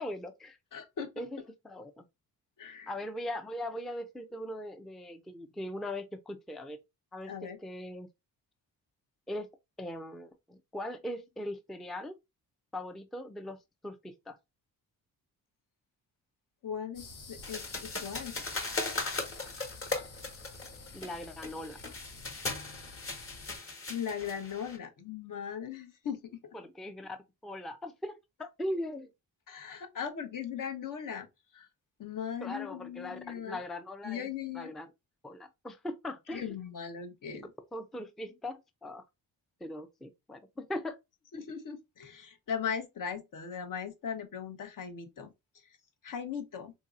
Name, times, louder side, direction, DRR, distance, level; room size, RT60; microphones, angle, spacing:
voice 1, 0.0-0.6 1.2-2.1 2.9-6.8 7.1-8.1 9.3-9.5 9.8-12.2 12.7-14.4 20.9-21.8 26.5-27.2 27.4-29.1 32.4-34.3 34.5-34.9 35.2-36.5 37.3-39.0 39.6-41.0, left 1 dB, ahead, 0.4 m, -40 dB
voice 2, 0.7-1.1 2.6-2.9 7.3-7.6 16.6-18.4 23.9-26.4 29.5-31.3 31.5-31.7 32.0-33.6 34.0-34.7 36.3-37.5 41.3-45.8 46.0-46.7, left 7 dB, 55° left, 0.9 m, -38 dB
sound 1, 16.9-23.6, left 4 dB, 85° left, 1.0 m, -50 dB
sound 2, 17.4-24.8, left 3 dB, 35° left, 1.2 m, -38 dB
3.9 x 2.8 x 2.4 m
cardioid pair, 100°, 38 cm